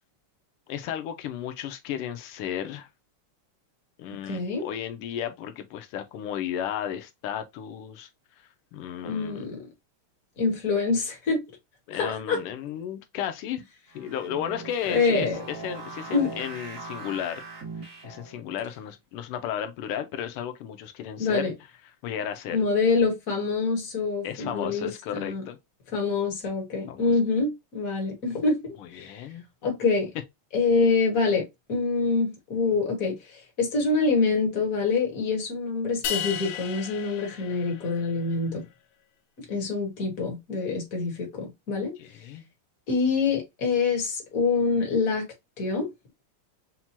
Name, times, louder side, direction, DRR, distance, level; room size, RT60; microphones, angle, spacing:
voice 1, 0.7-2.9 4.0-8.1 8.7-9.5 11.9-13.6 13.9-17.4 18.0-21.5 21.8-22.6 24.2-25.6 26.9-27.1 28.8-29.4 42.0-42.4, left 9 dB, 90° left, 1.5 m, -34 dB
voice 2, 4.2-4.7 9.0-9.6 10.4-11.4 11.9-12.4 14.9-15.4 16.1-16.3 21.2-21.5 22.5-25.4 25.9-29.1 29.6-30.1 30.5-33.1 33.6-38.6 39.5-41.9 42.9-45.3 45.6-45.9, left 4 dB, 45° left, 1.6 m, -25 dB
sound 1, 13.9-18.4, right 3 dB, 45° right, 1.2 m, -40 dB
sound 2, 36.0-38.3, left 9 dB, 70° left, 1.3 m, -34 dB
5.8 x 2.2 x 2.8 m
omnidirectional pair, 2.4 m